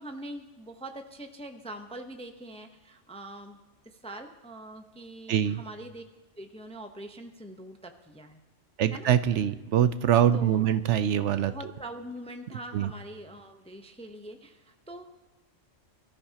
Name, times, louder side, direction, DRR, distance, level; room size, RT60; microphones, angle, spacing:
voice 1, 0.0-3.6 3.8-6.0 6.4-8.4 8.9-9.4 10.3-10.7 11.5-15.0, right 1 dB, 5° left, 5 dB, 0.6 m, -43 dB
voice 2, 5.3-5.6 8.8-11.5 12.7-12.9, right 10 dB, 70° right, 12 dB, 0.9 m, -24 dB
23.5 x 13.5 x 2.8 m, 1.2 s
omnidirectional pair, 1.3 m